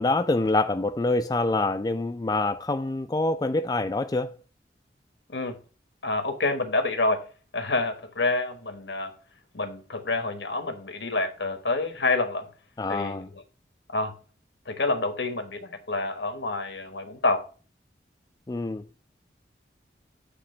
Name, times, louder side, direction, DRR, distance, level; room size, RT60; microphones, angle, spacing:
voice 1, 0.0-4.3 12.8-13.3 18.5-18.8, left 2 dB, 20° left, 0.3 m, -26 dB
voice 2, 6.0-7.2 7.5-9.1 9.5-12.5 12.9-13.4 13.9-14.1 14.7-17.4, left 3 dB, 80° left, 1.2 m, -28 dB
8.5 x 2.9 x 5.5 m
head